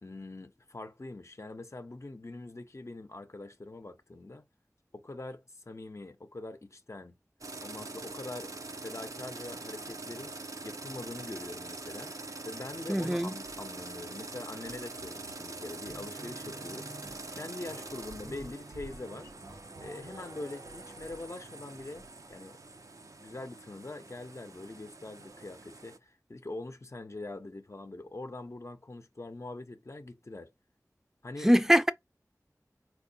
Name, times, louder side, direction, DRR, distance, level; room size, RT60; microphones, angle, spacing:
voice 1, 0.0-4.5 4.9-7.2 7.6-8.5 8.8-10.4 10.6-12.2 12.5-16.9 17.3-19.3 19.8-22.6 23.2-30.5 31.2-31.5, left 2 dB, 55° left, 0.6 m, -43 dB
sound 1, 7.4-26.0, right 3 dB, 65° right, 0.5 m, -44 dB
voice 2, 12.9-13.3 31.4-31.9, equal, 5° right, 0.5 m, -23 dB
sound 2, 13.4-13.8 14.3-21.5, right 2 dB, 85° right, 1.2 m, -52 dB
4.5 x 2.1 x 2.6 m
wide cardioid pair, 45°, 6 cm